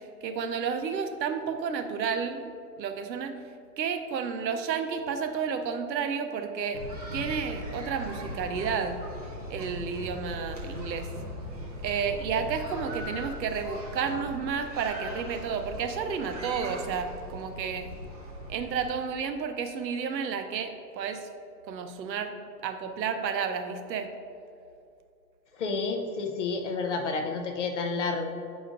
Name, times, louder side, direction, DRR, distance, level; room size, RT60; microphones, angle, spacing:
voice 1, 0.2-2.4 2.8-3.3 3.8-6.8 7.1-9.0 9.5-11.1 11.8-17.9 18.5-21.3 21.7-22.3 22.6-24.1, right 6 dB, 80° right, 8 dB, 0.8 m, -31 dB
sound 1, 6.7-18.8, equal, 25° right, 0.5 m, -39 dB
voice 2, 25.6-28.3, left 4 dB, 45° left, 4 dB, 0.7 m, -30 dB
8.7 x 5.0 x 2.5 m, 2.5 s
hypercardioid pair, 165°, 50 cm